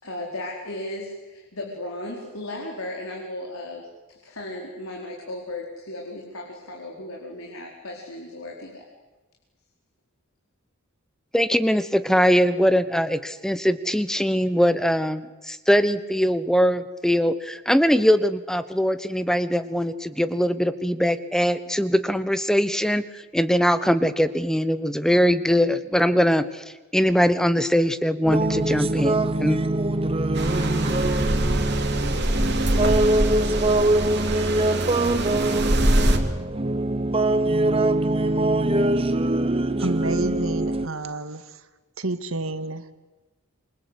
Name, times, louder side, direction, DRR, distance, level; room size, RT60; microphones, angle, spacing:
voice 1, 0.0-3.9 4.2-8.8, left 1 dB, 75° left, 0 dB, 4.8 m, -35 dB
voice 2, 11.3-26.6 26.9-29.6, equal, 5° left, 12 dB, 1.1 m, -21 dB
sound 1, 28.2-40.9, right 2 dB, 25° right, 1.0 m, -23 dB
sound 2, 30.3-36.2, right 1 dB, 50° right, 3.4 m, -24 dB
voice 3, 39.8-41.6 42.0-42.9, right 2 dB, 75° right, 10 dB, 1.9 m, -30 dB
28.0 x 25.0 x 8.4 m, 1.2 s
head